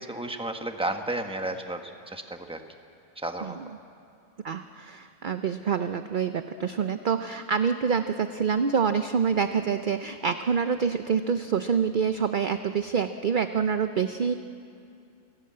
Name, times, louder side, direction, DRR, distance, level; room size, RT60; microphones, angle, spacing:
voice 1, 0.0-2.6 3.2-3.6, right 2 dB, 5° right, 5 dB, 1.2 m, -32 dB
voice 2, 4.4-14.3, right 6 dB, 50° right, 9 dB, 0.6 m, -26 dB
28.0 x 17.0 x 8.6 m, 2.5 s
omnidirectional pair, 1.5 m